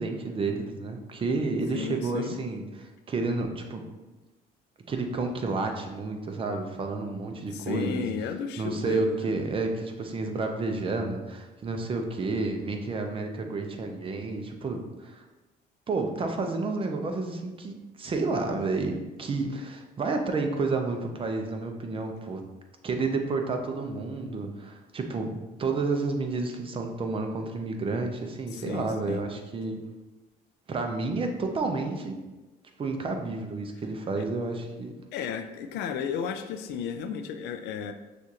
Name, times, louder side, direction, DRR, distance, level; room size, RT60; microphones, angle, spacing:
voice 1, 0.0-3.8 4.9-8.0 8.6-15.3 15.9-22.4 22.8-29.8 30.7-32.2 32.8-34.9, right 3 dB, 30° right, 4 dB, 0.6 m, -30 dB
voice 2, 1.7-2.4 7.5-9.3 28.5-29.2 34.2-34.3 35.1-37.9, left 7 dB, 85° left, 8 dB, 0.4 m, -33 dB
6.2 x 2.5 x 2.8 m, 1.1 s
cardioid pair, 110°, 17 cm